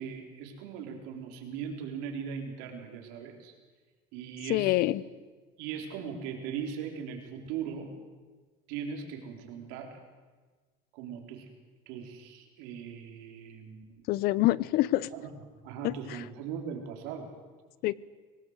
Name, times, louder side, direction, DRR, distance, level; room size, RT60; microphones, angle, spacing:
voice 1, 0.0-3.5 4.1-4.8 5.6-7.9 8.7-10.0 10.9-11.5 11.9-14.0 15.1-15.3 15.6-17.3, right 7 dB, 85° right, 3 dB, 4.1 m, -39 dB
voice 2, 4.5-5.0 14.1-15.1 15.8-16.2 17.8-17.9, left 17 dB, 65° left, 21 dB, 0.8 m, -26 dB
23.5 x 18.5 x 8.2 m, 1.4 s
cardioid pair, 135°, 17 cm